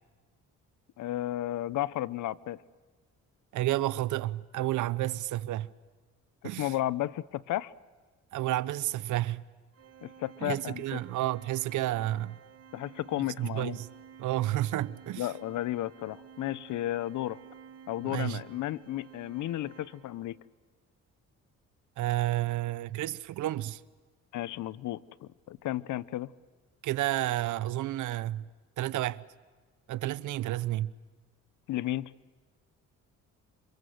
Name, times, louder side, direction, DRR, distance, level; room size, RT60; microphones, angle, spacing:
voice 1, 1.0-2.6 6.4-7.7 10.0-11.0 12.7-13.8 15.2-17.4 17.9-20.4 24.3-26.3 31.7-32.1, left 14 dB, 75° left, 0.8 m, -33 dB
voice 2, 3.5-5.7 6.4-6.7 8.3-9.4 10.4-12.4 13.4-13.9 14.2-15.3 18.0-18.4 22.0-23.8 26.8-28.5 28.8-29.2 29.9-30.9, right 15 dB, 80° right, 0.8 m, -31 dB
Organ, 9.7-20.5, right 8 dB, 50° right, 1.5 m, -53 dB
27.5 x 24.5 x 7.9 m
cardioid pair, 90°, 30 cm